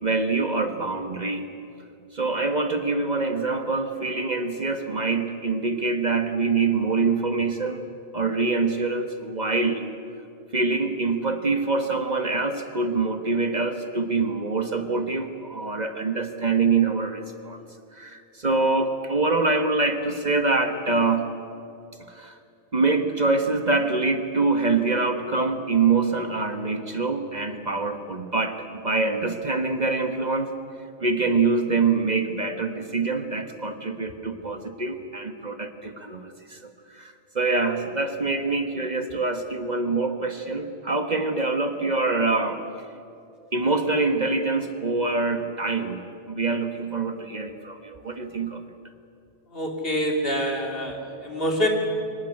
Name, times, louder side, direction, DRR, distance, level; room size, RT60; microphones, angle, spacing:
voice 1, 0.0-1.5 2.1-7.8 8.1-9.8 10.5-17.6 17.9-21.2 22.1-22.4 22.7-30.5 31.0-42.6 43.5-48.6, right 3 dB, 40° right, 7 dB, 1.4 m, -25 dB
voice 2, 49.5-51.7, equal, 55° left, 1 dB, 3.4 m, -26 dB
24.0 x 18.5 x 9.8 m, 2.6 s
omnidirectional pair, 1.1 m